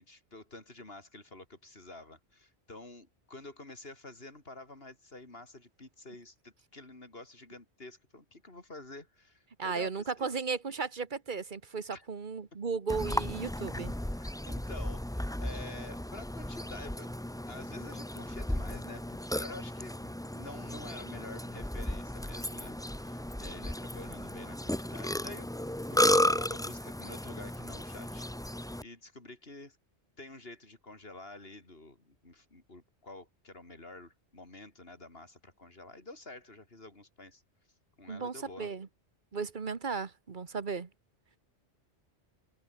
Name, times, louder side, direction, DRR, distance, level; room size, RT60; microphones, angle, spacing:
voice 1, 0.0-10.3 11.9-12.1 14.2-17.1 17.5-28.3 28.8-29.8 30.2-37.4 38.0-38.7, left 2 dB, 60° left, 4.4 m, -49 dB
voice 2, 9.6-13.9 38.1-38.9 39.3-40.9, right 5 dB, 45° right, 1.4 m, -35 dB
Burping eructation, 12.9-28.8, left 1 dB, 5° left, 0.6 m, -34 dB
omnidirectional pair, 1.2 m